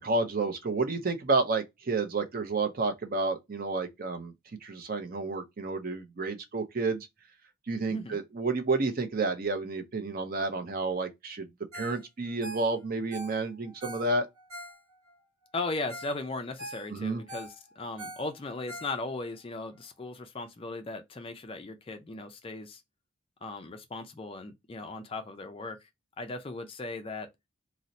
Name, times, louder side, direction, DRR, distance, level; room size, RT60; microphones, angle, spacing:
voice 1, 0.0-4.3 4.6-7.1 7.7-11.5 11.7-14.3 16.9-17.2, right 3 dB, 40° right, 0.5 m, -30 dB
voice 2, 7.9-8.2 15.5-22.8 23.4-25.9 26.2-27.3, left 2 dB, 25° left, 0.3 m, -37 dB
Ringtone, 11.7-12.0 12.3-15.2 15.6-15.7 15.9-16.2 16.4-19.3 19.8-19.9, equal, 80° right, 1.0 m, -44 dB
2.6 x 2.0 x 3.9 m
head